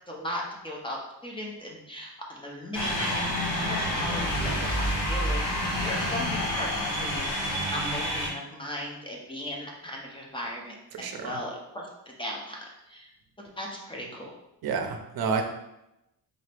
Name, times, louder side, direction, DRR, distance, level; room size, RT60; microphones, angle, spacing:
voice 1, 0.1-3.3 3.6-5.5 5.8-6.7 7.0-12.6 12.9-13.1 13.6-14.3, equal, 10° left, -2 dB, 0.6 m, -37 dB
sound 1, 2.7-8.3, equal, 65° left, 1.5 m, -28 dB
voice 2, 10.9-11.3 14.6-15.4, right 5 dB, 55° right, 4 dB, 0.6 m, -29 dB
3.9 x 2.7 x 3.3 m, 0.88 s
wide cardioid pair, 150°, 43 cm